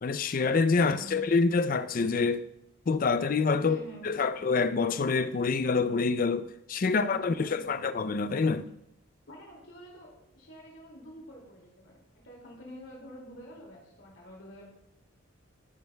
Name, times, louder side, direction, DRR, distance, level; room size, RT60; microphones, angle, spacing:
voice 1, 0.0-2.4 2.9-3.8 4.0-8.7, left 4 dB, 40° left, 0.4 m, -26 dB
voice 2, 0.8-1.2 3.6-4.2 6.8-7.8 9.3-14.7, equal, 70° left, 2.4 m, -47 dB
14.5 x 9.2 x 2.2 m
head